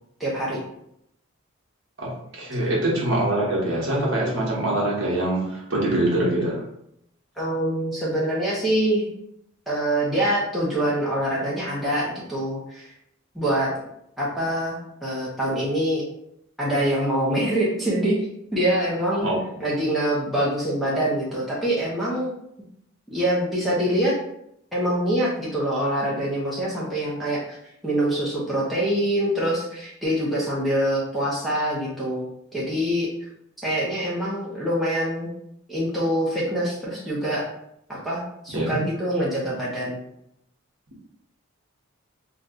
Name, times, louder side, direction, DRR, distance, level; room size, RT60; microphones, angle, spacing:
voice 1, 0.2-0.6 7.4-9.1 9.7-12.9 13.3-13.7 14.2-16.0 16.6-18.3 18.5-19.3 19.6-22.3 23.1-24.2 24.7-27.6 27.8-32.3 32.5-33.1 33.6-35.3 35.7-37.5 37.9-40.0, right 1 dB, ahead, -8 dB, 0.6 m, -25 dB
voice 2, 2.0-6.6 19.2-19.4 38.5-38.8, right 1 dB, 60° right, -4 dB, 0.9 m, -24 dB
2.6 x 2.2 x 3.6 m, 0.76 s
head